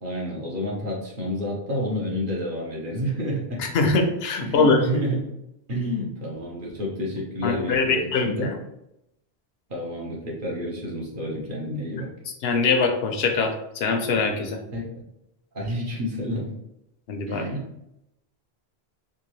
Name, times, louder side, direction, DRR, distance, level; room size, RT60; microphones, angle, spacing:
voice 1, 0.0-3.6 4.4-5.2 5.7-8.6 9.7-12.1 14.7-15.0 15.5-16.5 17.3-17.7, equal, 55° right, -3 dB, 1.1 m, -29 dB
voice 2, 3.6-4.8 7.4-8.5 12.4-14.6 17.1-17.4, left 4 dB, 75° left, 4 dB, 0.9 m, -23 dB
3.6 x 2.7 x 3.1 m, 0.83 s
omnidirectional pair, 1.0 m